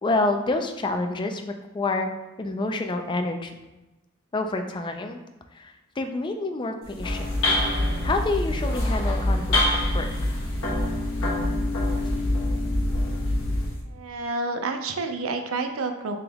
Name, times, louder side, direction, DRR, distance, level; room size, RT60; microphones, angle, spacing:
voice 1, 0.0-2.1 2.4-3.5 4.3-5.2 5.5-7.3 8.0-9.6 9.9-10.4, left 2 dB, 20° left, 5 dB, 0.3 m, -28 dB
sound 1, 6.8-13.8, left 1 dB, 60° left, 1.2 m, -25 dB
voice 2, 13.9-16.2, right 3 dB, 70° right, 5 dB, 0.5 m, -29 dB
3.4 x 2.9 x 3.5 m, 1.0 s
head